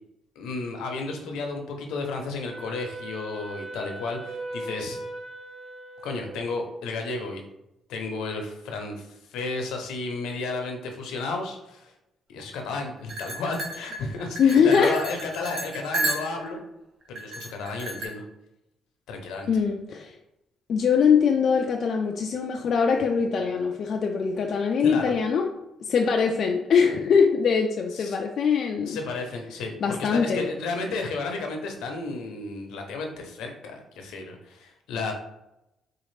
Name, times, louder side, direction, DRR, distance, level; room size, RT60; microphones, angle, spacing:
voice 1, 0.4-5.0 6.0-7.4 7.9-11.9 12.3-16.6 17.1-18.2 19.1-19.5 24.8-25.1 27.9-28.2 28.9-35.1, left 3 dB, 90° left, 3 dB, 0.6 m, -33 dB
Wind instrument woodwind instrument, 2.5-6.8, right 2 dB, 25° right, 0.7 m, -39 dB
sound 1, 13.1-16.6 17.1-18.1, right 2 dB, 50° right, 0.8 m, -32 dB
voice 2, 14.4-15.0 19.5-20.2 20.7-25.5 25.8-29.0 29.8-30.4, left 6 dB, 60° left, 2 dB, 0.3 m, -22 dB
4.0 x 2.4 x 3.2 m, 0.89 s
cardioid pair, 90°, 0 cm